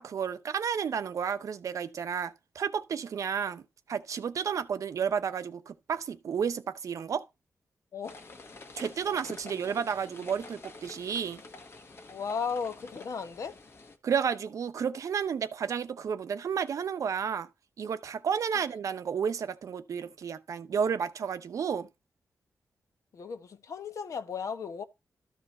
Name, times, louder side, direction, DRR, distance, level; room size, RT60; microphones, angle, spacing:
voice 1, 0.0-3.6 3.9-7.2 8.8-11.4 14.0-17.5 17.8-21.9, right 7 dB, 70° right, 0.7 m, -31 dB
sound 1, 8.0-14.0, left 3 dB, 45° left, 1.5 m, -48 dB
voice 2, 12.1-13.6 23.1-24.8, left 6 dB, 70° left, 1.0 m, -35 dB
13.0 x 4.8 x 4.2 m
wide cardioid pair, 115°, 6 cm